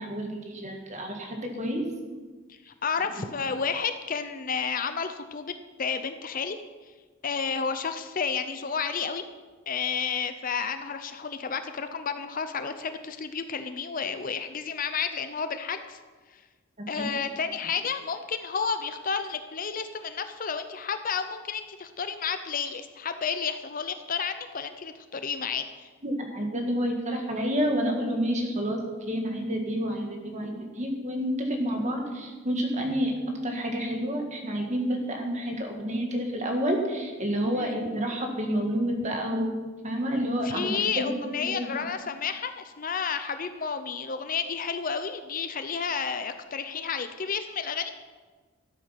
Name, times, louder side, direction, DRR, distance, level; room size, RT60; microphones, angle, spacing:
voice 1, 0.0-1.8 16.8-17.1 26.0-39.6 39.8-41.7, equal, 35° right, 2 dB, 1.8 m, -29 dB
voice 2, 2.5-5.5 5.8-6.6 7.2-9.2 9.7-16.0 16.3-16.4 16.9-25.9 37.5-37.8 40.4-47.9, left 6 dB, 40° left, 9 dB, 0.6 m, -31 dB
13.0 x 8.1 x 5.9 m, 1.4 s
head